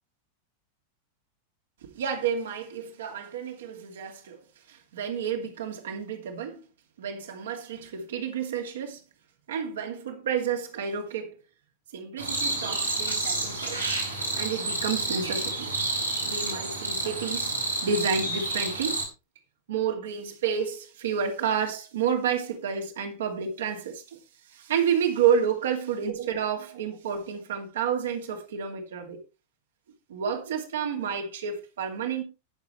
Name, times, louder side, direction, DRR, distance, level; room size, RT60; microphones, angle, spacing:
voice 1, 1.8-4.4 4.7-6.6 7.0-9.0 9.5-11.3 11.9-13.9 14.4-15.7 16.3-17.6 17.8-19.0 19.7-24.2 24.5-29.2 30.1-32.2, right 7 dB, 60° right, 2.8 m, -30 dB
sound 1, 12.2-19.0, right 2 dB, 85° right, 4.6 m, -29 dB
19.5 x 7.2 x 3.2 m
figure-of-eight pair, 90°, 0 cm